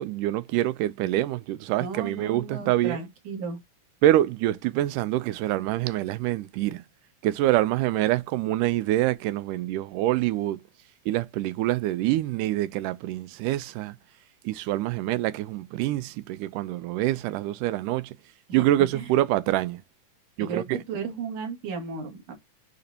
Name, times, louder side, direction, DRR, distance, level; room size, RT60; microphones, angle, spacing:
voice 1, 0.0-3.0 4.0-6.8 7.2-10.6 11.1-14.0 14.5-18.1 18.5-19.8 20.4-20.8, right 14 dB, 80° right, 2.1 m, -25 dB
voice 2, 1.7-3.6 18.5-19.1 20.4-22.3, right 5 dB, 50° right, 3.3 m, -35 dB
10.5 x 4.0 x 2.8 m
omnidirectional pair, 3.8 m